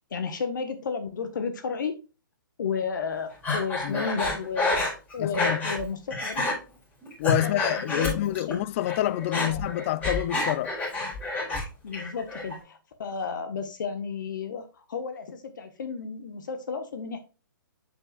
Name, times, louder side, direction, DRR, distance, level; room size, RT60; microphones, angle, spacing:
voice 1, 0.1-2.0 2.6-6.5 7.4-8.6 9.4-9.6 11.8-17.2, left 5 dB, 60° left, 1.4 m, -32 dB
Breathing, 3.4-5.8 6.1-6.5 7.0-8.5 8.8-11.6 11.9-12.6, left 2 dB, 15° left, 4.8 m, -29 dB
voice 2, 5.2-5.7 7.2-10.8, left 14 dB, 35° left, 0.5 m, -27 dB
8.3 x 7.2 x 2.4 m
hypercardioid pair, 130°, 11 cm